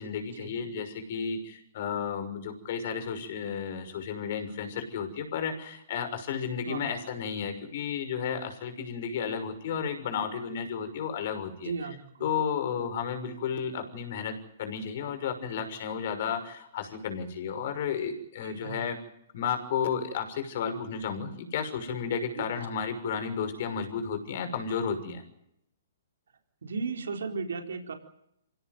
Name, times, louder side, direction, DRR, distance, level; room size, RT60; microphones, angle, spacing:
voice 1, 0.0-11.7 12.2-19.0 19.3-25.2, left 7 dB, 55° left, 8 dB, 6.2 m, -33 dB
voice 2, 11.6-12.3 18.4-18.8 22.3-22.5 26.6-27.9, right 4 dB, 80° right, 4 dB, 4.1 m, -35 dB
26.0 x 17.0 x 9.4 m, 0.77 s
hypercardioid pair, 135°, 0 cm